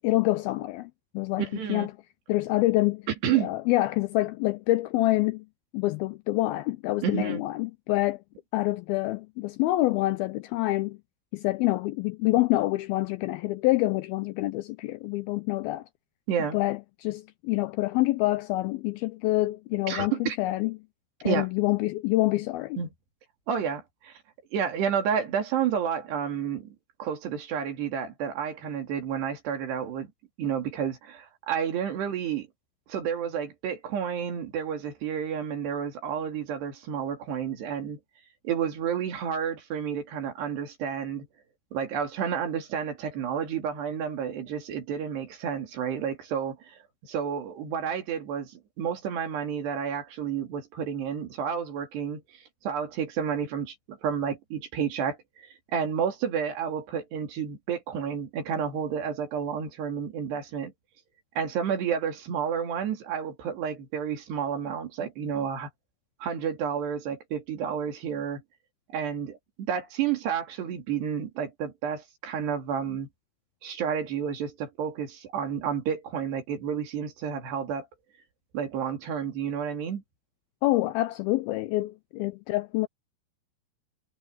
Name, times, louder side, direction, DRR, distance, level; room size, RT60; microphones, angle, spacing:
voice 1, 0.0-1.9 2.3-3.1 3.4-5.5 5.7-8.2 8.5-11.0 11.3-15.9 16.5-20.8 21.2-22.8 80.6-82.9, left 18 dB, 85° left, 2.2 m, -26 dB
voice 2, 1.4-1.9 3.2-3.5 7.0-7.4 16.3-16.6 19.9-20.4 21.2-21.5 22.8-22.9 23.5-24.2 24.5-30.1 30.4-32.5 32.9-38.0 38.4-41.3 41.7-60.7 61.4-65.7 66.2-68.4 68.9-73.1 73.6-77.9 78.5-80.0, right 8 dB, 75° right, 5.0 m, -30 dB
omnidirectional pair, 4.8 m